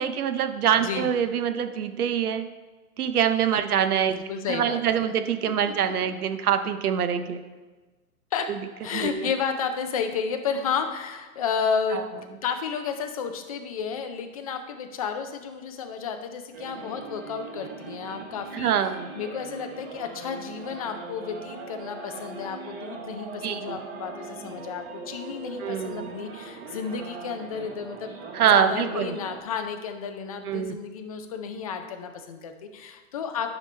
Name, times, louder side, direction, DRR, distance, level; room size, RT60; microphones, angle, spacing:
voice 1, 0.0-2.4 3.0-4.2 4.5-7.4 8.5-8.6 8.9-9.3 11.9-12.0 18.5-19.1 23.4-23.8 25.6-26.2 28.3-29.1 30.5-30.8, right 8 dB, 80° right, 9 dB, 0.8 m, -25 dB
voice 2, 0.8-1.1 4.1-5.0 5.6-5.7 8.3-8.5 8.8-33.5, left 6 dB, 25° left, 6 dB, 0.4 m, -32 dB
sound 1, 16.5-29.4, right 3 dB, 45° right, 1.3 m, -40 dB
9.7 x 5.2 x 3.3 m, 1.3 s
hypercardioid pair, 140°, 44 cm